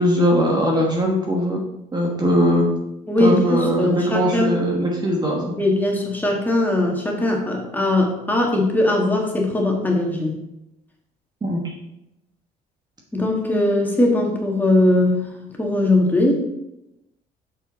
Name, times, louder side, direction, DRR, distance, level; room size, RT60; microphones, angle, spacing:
voice 1, 0.0-1.6 1.9-2.7 3.2-5.5 11.4-11.7, equal, 25° right, -1 dB, 1.2 m, -20 dB
voice 2, 3.1-4.5 5.4-10.4 13.1-15.2 15.6-16.3, left 2 dB, 10° left, 0 dB, 1.7 m, -20 dB
6.9 x 5.5 x 4.3 m, 0.89 s
cardioid pair, 110°, 17 cm